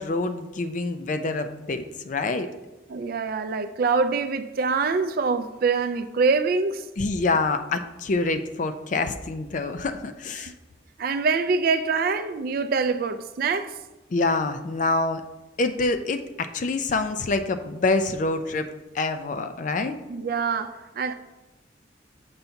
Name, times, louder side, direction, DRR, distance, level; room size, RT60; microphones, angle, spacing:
voice 1, 0.0-2.5 7.0-10.5 14.1-15.2 15.6-18.7 18.9-20.0, left 3 dB, 45° left, 0.4 m, -26 dB
voice 2, 2.9-6.8 11.0-13.8 20.1-21.1, right 4 dB, 50° right, 0.4 m, -24 dB
6.9 x 2.7 x 5.6 m
head